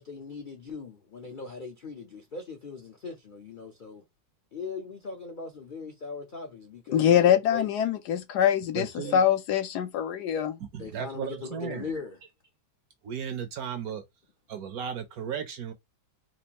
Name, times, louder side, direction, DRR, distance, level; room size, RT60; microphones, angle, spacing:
voice 1, 0.0-4.0 4.5-7.7 9.0-9.1 10.8-12.2, left 4 dB, 55° left, 0.5 m, -40 dB
voice 2, 6.9-10.6, left 9 dB, 75° left, 1.1 m, -24 dB
voice 3, 8.7-9.2 10.7-11.9 13.0-14.0 14.5-15.7, right 7 dB, 65° right, 1.0 m, -35 dB
4.3 x 2.4 x 2.9 m
omnidirectional pair, 1.9 m